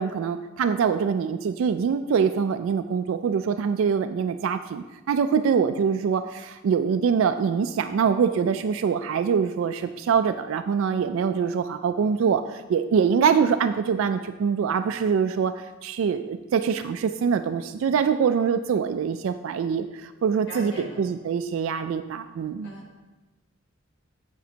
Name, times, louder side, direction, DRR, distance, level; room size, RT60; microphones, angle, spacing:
voice 1, 0.0-22.7, right 6 dB, 75° right, 8 dB, 0.3 m, -24 dB
voice 2, 20.5-21.0 22.6-23.0, left 1 dB, 60° left, -2 dB, 1.2 m, -39 dB
9.2 x 6.9 x 2.8 m, 1.1 s
head